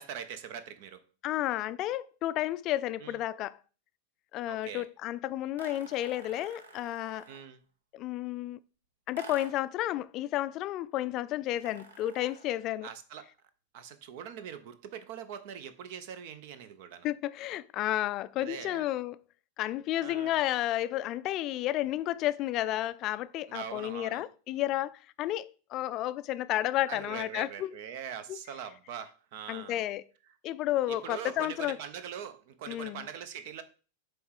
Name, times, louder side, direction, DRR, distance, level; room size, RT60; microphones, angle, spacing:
voice 1, 0.0-1.0 3.0-3.2 4.5-4.9 7.3-7.6 12.8-13.2 13.7-17.1 18.4-18.9 20.0-20.3 23.5-24.2 26.9-29.8 30.9-33.6, right 8 dB, 50° right, 0.6 m, -42 dB
voice 2, 1.2-3.6 4.3-7.3 7.9-8.6 9.1-12.9 17.0-19.2 19.6-27.7 28.3-28.4 29.5-30.0 30.4-31.8 32.7-33.1, left 14 dB, 35° left, 0.3 m, -32 dB
sound 1, 5.6-7.5 9.2-9.8 11.6-12.6, right 4 dB, 65° right, 1.1 m, -49 dB
7.8 x 3.2 x 4.7 m
figure-of-eight pair, 90°, 0 cm